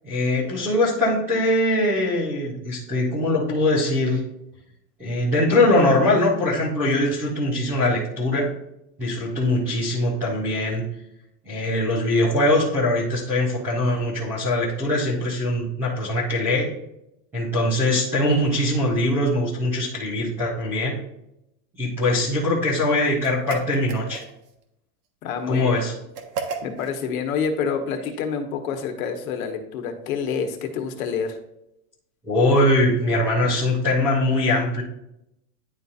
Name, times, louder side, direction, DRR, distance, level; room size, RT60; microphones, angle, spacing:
voice 1, 0.0-4.2 5.0-8.5 9.0-10.8 11.4-16.7 17.3-20.9 21.8-24.2 25.5-25.9 32.2-34.8, left 1 dB, 5° right, -10 dB, 0.3 m, -22 dB
sound 1, 23.2-24.5 26.1-27.0, right 5 dB, 75° right, 1.3 m, -33 dB
voice 2, 25.2-25.8 26.6-31.4, left 6 dB, 55° left, 6 dB, 1.2 m, -27 dB
10.5 x 4.1 x 2.4 m, 0.84 s
supercardioid pair, 170°, 48 cm